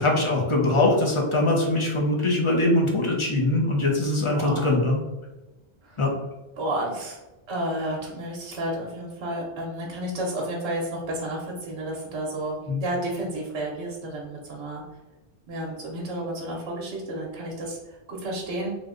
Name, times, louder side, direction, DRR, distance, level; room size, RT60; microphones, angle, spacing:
voice 1, 0.0-5.0 6.0-6.1 12.7-12.8, left 2 dB, 40° left, -1 dB, 0.5 m, -22 dB
voice 2, 4.3-4.7 5.8-6.1 6.6-7.2 7.5-14.8 15.5-18.8, right 1 dB, 65° right, -2 dB, 1.0 m, -31 dB
3.3 x 2.1 x 3.6 m, 1.1 s
omnidirectional pair, 1.2 m